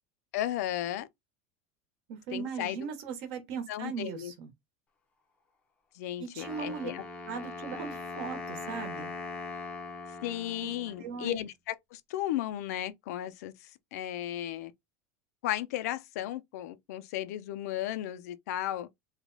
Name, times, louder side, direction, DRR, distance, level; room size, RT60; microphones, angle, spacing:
voice 1, 0.3-1.1 2.3-2.8 3.7-4.3 6.0-7.0 10.2-13.5 13.9-14.7 15.4-18.9, left 13 dB, 75° left, 0.5 m, -34 dB
voice 2, 2.1-4.5 6.2-6.9 7.2-9.1 10.6-10.7 11.0-11.4, right 6 dB, 50° right, 1.0 m, -38 dB
Wind instrument woodwind instrument, 6.4-11.4, left 3 dB, 15° left, 0.6 m, -41 dB
3.2 x 2.1 x 3.8 m
supercardioid pair, 175°, 9 cm